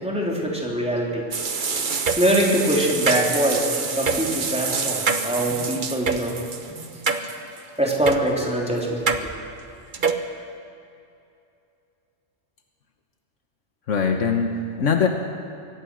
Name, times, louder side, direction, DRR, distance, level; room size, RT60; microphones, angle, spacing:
voice 1, 0.0-1.2 2.2-6.3 7.8-9.0, right 1 dB, 5° right, -3 dB, 3.6 m, -23 dB
sound 1, 1.3-7.6 8.1-8.2 9.1-9.2 9.9-10.2, right 5 dB, 45° right, 1.1 m, -26 dB
voice 2, 13.9-15.1, left 6 dB, 75° left, 4 dB, 1.5 m, -22 dB
23.5 x 17.5 x 6.4 m, 2.6 s
omnidirectional pair, 1.3 m